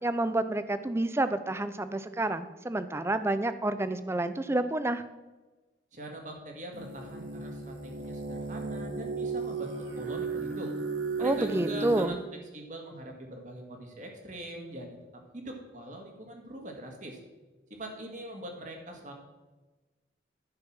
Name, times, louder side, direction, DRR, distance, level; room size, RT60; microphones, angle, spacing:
voice 1, 0.0-5.0 11.2-12.2, right 2 dB, 15° right, 12 dB, 0.5 m, -29 dB
voice 2, 5.9-10.7 11.2-12.2 12.5-15.0 15.3-17.2 17.7-19.1, right 1 dB, 45° right, 2 dB, 1.8 m, -42 dB
sound 1, 6.7-12.1, right 4 dB, 80° right, 1.5 m, -35 dB
10.5 x 5.8 x 6.1 m, 1.2 s
head